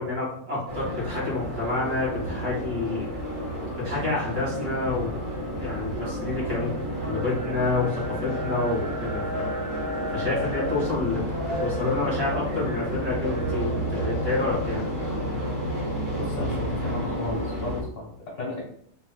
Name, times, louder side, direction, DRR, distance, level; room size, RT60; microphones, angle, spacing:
voice 1, 0.0-3.1 3.7-5.2 5.6-6.7 7.0-9.6 10.1-11.2 11.6-14.8, left 3 dB, 50° right, -6 dB, 1.9 m, -28 dB
sound 1, 0.7-17.8, equal, 35° right, 1.1 m, -30 dB
voice 2, 16.2-18.6, left 2 dB, 50° left, -4 dB, 1.6 m, -33 dB
4.2 x 2.7 x 2.2 m, 0.63 s
omnidirectional pair, 1.7 m